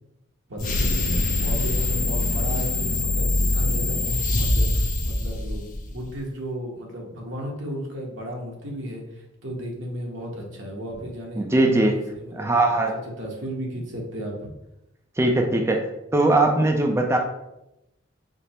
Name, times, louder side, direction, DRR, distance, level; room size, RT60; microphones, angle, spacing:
voice 1, 0.5-12.8 13.2-14.5, equal, 70° right, -1 dB, 1.1 m, -35 dB
sound 1, 0.6-6.0, left 1 dB, 40° left, 0.5 m, -23 dB
voice 2, 11.4-12.0 12.3-12.9 15.2-15.9 16.1-17.2, right 2 dB, 15° right, 2 dB, 0.4 m, -20 dB
4.9 x 2.0 x 4.3 m, 0.89 s
head